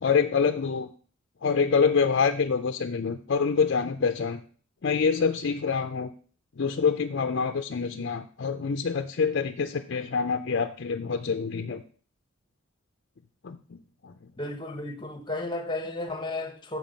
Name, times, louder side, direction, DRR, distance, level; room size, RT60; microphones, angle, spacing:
voice 1, 0.0-0.9 1.4-4.4 4.8-6.1 6.6-11.8 13.4-14.1, left 5 dB, 60° left, 0.5 m, -26 dB
voice 2, 14.4-16.8, left 2 dB, 25° left, 1.0 m, -33 dB
7.2 x 6.4 x 5.2 m
head